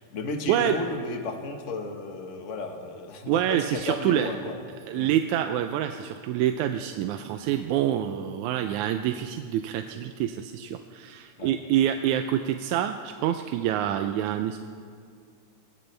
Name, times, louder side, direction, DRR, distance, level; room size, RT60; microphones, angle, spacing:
voice 1, 0.1-4.6 4.9-5.1 11.4-11.5, left 3 dB, 45° left, 3 dB, 0.9 m, -34 dB
voice 2, 3.3-4.3 4.9-14.7, right 11 dB, 90° right, 7 dB, 2.0 m, -26 dB
21.0 x 19.5 x 3.3 m, 2.3 s
omnidirectional pair, 3.4 m